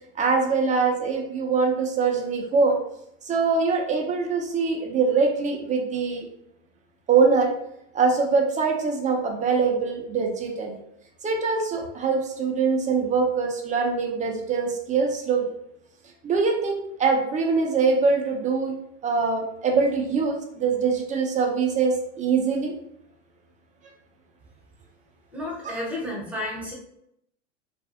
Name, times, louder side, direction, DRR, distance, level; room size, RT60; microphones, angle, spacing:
voice 1, 0.2-2.8 3.3-6.2 7.1-7.5 7.9-10.8 11.2-15.5 16.2-18.8 19.0-22.7 25.6-25.8, right 4 dB, 20° right, 1 dB, 0.5 m, -23 dB
voice 2, 25.3-26.7, left 1 dB, 5° right, -4 dB, 0.9 m, -31 dB
2.4 x 2.3 x 2.6 m, 0.75 s
hypercardioid pair, 95°, 36 cm